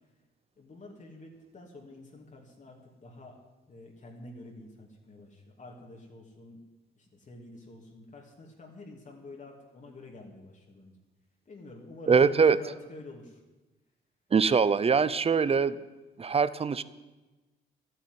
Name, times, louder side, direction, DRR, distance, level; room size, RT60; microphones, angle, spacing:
voice 1, 0.6-3.4 3.7-6.6 7.0-10.9 11.5-13.4, left 2 dB, 40° left, 0 dB, 2.6 m, -48 dB
voice 2, 12.1-12.6 14.3-15.8 16.2-16.8, right 5 dB, 30° right, 17 dB, 0.7 m, -23 dB
12.5 x 8.5 x 9.6 m, 1.1 s
cardioid pair, 90°, 20 cm